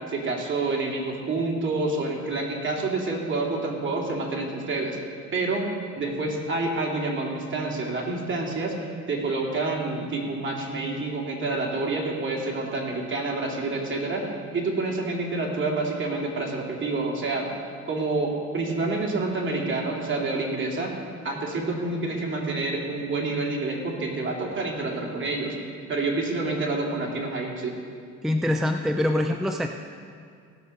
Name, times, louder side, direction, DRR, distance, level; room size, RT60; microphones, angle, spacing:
voice 1, 0.1-5.0 5.3-5.7 6.0-8.7 9.1-14.3 14.5-17.5 17.9-20.9 21.2-25.6 25.9-27.8, right 3 dB, 40° right, -2 dB, 2.6 m, -28 dB
voice 2, 28.2-29.7, left 1 dB, ahead, 4 dB, 0.5 m, -24 dB
17.0 x 6.5 x 5.4 m, 2.2 s
cardioid pair, 90°, 30 cm